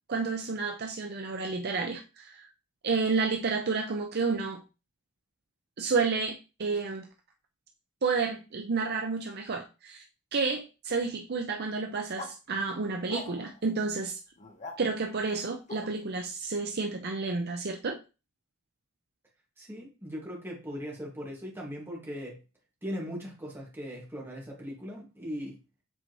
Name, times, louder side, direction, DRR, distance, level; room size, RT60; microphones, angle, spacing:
voice 1, 0.1-2.5 2.8-4.6 5.8-7.1 8.0-10.0 10.3-14.2 14.8-18.0, right 4 dB, 50° right, 3 dB, 0.7 m, -30 dB
sound 1, 12.1-12.3 13.1-13.6 14.4-14.8 15.7-15.9, left 3 dB, 35° left, 1.4 m, -41 dB
voice 2, 19.6-22.4 22.8-25.6, equal, 10° right, -3 dB, 2.0 m, -39 dB
7.7 x 4.3 x 3.2 m, 0.31 s
head